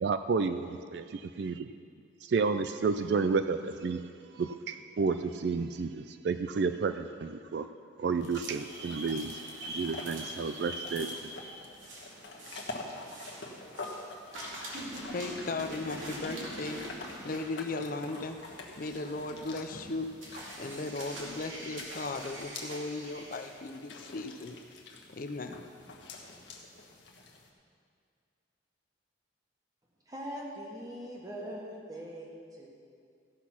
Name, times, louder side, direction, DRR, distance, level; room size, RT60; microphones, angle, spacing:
voice 1, 0.0-1.7 2.2-4.0 4.3-7.7 8.0-9.4 9.7-11.3, right 4 dB, 55° right, 10 dB, 0.3 m, -31 dB
sound 1, 8.2-27.5, left 3 dB, 65° left, 1.2 m, -47 dB
sound 2, 8.2-14.0 14.3-23.5, right 1 dB, 80° right, 2.4 m, -44 dB
voice 2, 15.1-18.4 18.8-20.1 20.6-24.6 25.1-25.6, left 3 dB, 45° left, 7 dB, 0.5 m, -37 dB
voice 3, 30.1-32.7, equal, 20° right, -2 dB, 1.5 m, -41 dB
15.0 x 6.1 x 5.9 m, 2.3 s
head